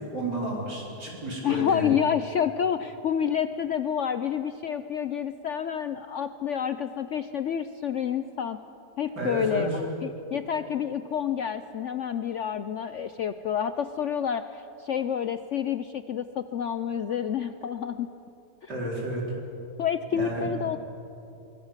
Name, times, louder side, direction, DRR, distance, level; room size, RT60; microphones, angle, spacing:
voice 1, 0.1-1.9 9.2-9.8 18.7-19.2 20.1-20.5, right 1 dB, 80° right, -3 dB, 5.3 m, -31 dB
voice 2, 1.4-8.6 9.0-18.1 18.6-18.7 19.8-20.8, left 8 dB, 65° left, 11 dB, 0.8 m, -29 dB
23.5 x 21.0 x 7.4 m, 2.9 s
omnidirectional pair, 1.8 m